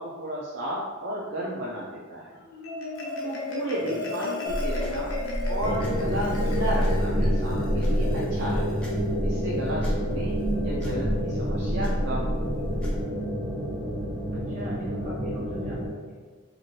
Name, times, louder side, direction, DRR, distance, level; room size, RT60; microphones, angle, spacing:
voice 1, 0.0-2.4 3.2-5.1 5.4-8.7 9.2-10.3 10.6-12.6, right 1 dB, 55° right, -5 dB, 0.4 m, -33 dB
Marimba xylophone, 2.4-9.0, left 2 dB, 80° left, 0.6 m, -34 dB
voice 2, 3.8-4.1 14.3-16.1, equal, 35° right, -6 dB, 0.9 m, -42 dB
sound 1, 4.5-13.0, equal, 5° left, 0.4 m, -29 dB
sound 2, 5.6-15.9, equal, 85° right, 0.8 m, -29 dB
2.5 x 2.5 x 3.1 m, 1.4 s
head